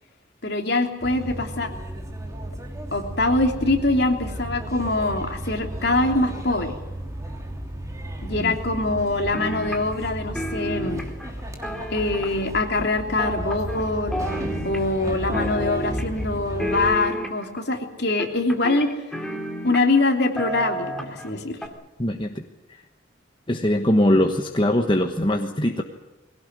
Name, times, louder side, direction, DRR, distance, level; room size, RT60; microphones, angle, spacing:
voice 1, 0.4-1.7 2.9-6.8 8.2-11.0 11.9-14.3 14.6-18.9 19.6-21.6, left 2 dB, 55° left, 3 dB, 3.1 m, -23 dB
sound 1, 1.0-17.0, right 1 dB, 15° right, 3.0 m, -33 dB
sound 2, 9.3-10.1 10.4-12.6 13.2-13.9 14.1-15.1 15.3-16.2 16.6-17.6 18.2-20.0 20.4-21.3 21.6-21.7, equal, 5° left, 2.2 m, -31 dB
voice 2, 22.0-22.4 23.5-25.8, left 1 dB, 25° left, 4 dB, 1.2 m, -21 dB
21.5 x 17.5 x 9.6 m, 1.1 s
head